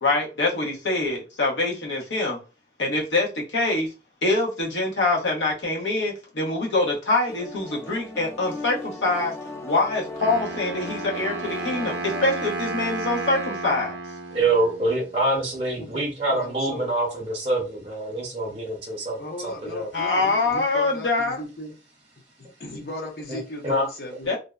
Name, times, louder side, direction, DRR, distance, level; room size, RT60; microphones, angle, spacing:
voice 1, 0.0-2.4 2.8-3.9 4.2-9.3 9.6-14.0 19.9-21.4 24.3-24.4, left 2 dB, 90° left, 0.9 m, -24 dB
sound 1, 7.3-12.4, left 2 dB, 15° left, 0.3 m, -37 dB
Wind instrument woodwind instrument, 10.2-15.2, right 2 dB, 85° right, 0.4 m, -32 dB
voice 2, 14.3-19.9 23.3-23.9, right 2 dB, 35° right, 0.6 m, -26 dB
voice 3, 15.9-16.9 19.2-21.7 22.6-24.3, left 1 dB, 55° left, 0.6 m, -37 dB
2.6 x 2.0 x 2.3 m
head